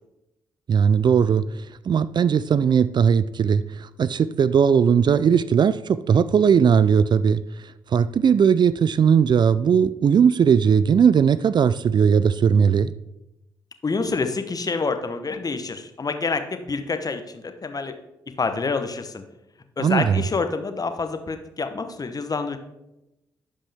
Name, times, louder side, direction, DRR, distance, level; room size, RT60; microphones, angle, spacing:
voice 1, 0.7-1.4 1.9-7.4 7.9-12.9 19.8-20.2, right 7 dB, 45° right, 0.4 m, -18 dB
voice 2, 13.8-17.9 18.4-19.2 19.8-22.6, left 4 dB, 35° left, 1.1 m, -27 dB
11.0 x 5.3 x 3.5 m
hypercardioid pair, 40°, 10 cm